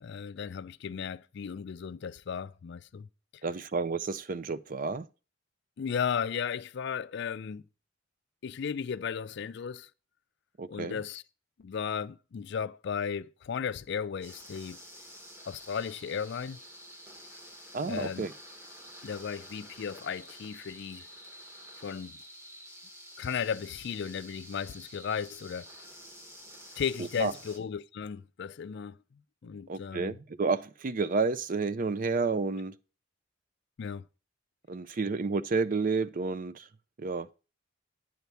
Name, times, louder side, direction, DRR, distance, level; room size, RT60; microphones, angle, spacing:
voice 1, 0.0-3.1 5.8-7.6 8.4-9.9 10.7-11.2 11.6-14.8 15.4-16.6 17.9-18.3 19.0-21.1 21.8-22.2 23.2-25.7 26.8-29.0 29.4-30.1 33.8-34.1, left 7 dB, 60° left, 0.4 m, -35 dB
voice 2, 3.4-5.1 10.6-11.0 17.7-18.3 27.2-27.3 29.7-32.7 34.7-36.7 37.0-37.3, right 4 dB, 45° right, 0.5 m, -30 dB
sound 1, 14.2-27.6, equal, 15° right, 1.3 m, -49 dB
9.2 x 4.6 x 6.9 m
head